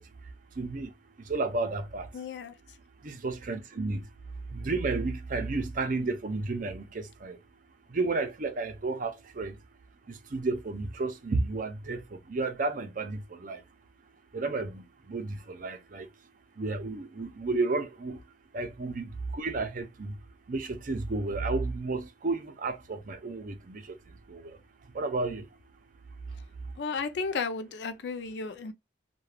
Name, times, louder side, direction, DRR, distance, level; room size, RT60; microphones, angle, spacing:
voice 1, 0.6-0.9 1.3-2.1 3.0-4.0 4.5-7.4 7.9-9.5 10.3-13.6 14.3-16.1 16.6-18.2 18.5-20.1 20.5-23.8 24.3-24.6 24.9-25.4, right 3 dB, 50° right, 0.5 m, -32 dB
voice 2, 2.1-2.8 26.3-26.4 26.8-28.7, left 4 dB, 75° left, 0.4 m, -34 dB
2.3 x 2.2 x 3.2 m
head